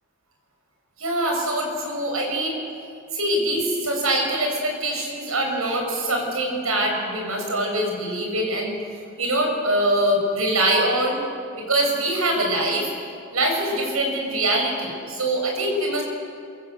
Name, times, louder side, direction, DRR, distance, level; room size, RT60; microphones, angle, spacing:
voice 1, 1.0-2.6 3.1-8.8 9.2-11.2 11.7-12.9 13.3-16.0, right 1 dB, 85° right, 2 dB, 6.6 m, -23 dB
28.0 x 23.5 x 8.1 m, 2.5 s
head